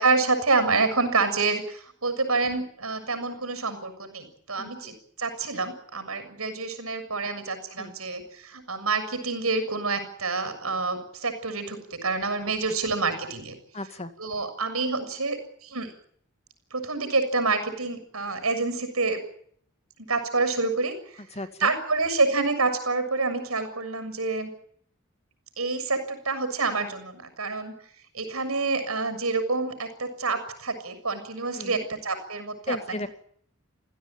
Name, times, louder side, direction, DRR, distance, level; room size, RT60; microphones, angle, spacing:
voice 1, 0.0-13.5 14.2-15.9 16.7-19.2 20.1-21.2 21.6-24.5 25.6-27.7 28.1-32.8, right 3 dB, 85° right, 10 dB, 6.9 m, -27 dB
voice 2, 4.6-4.9 7.8-7.9 13.7-14.1 21.3-21.7 31.5-31.9 32.7-33.1, left 2 dB, 30° left, 10 dB, 2.0 m, -35 dB
29.0 x 16.0 x 8.9 m, 0.64 s
head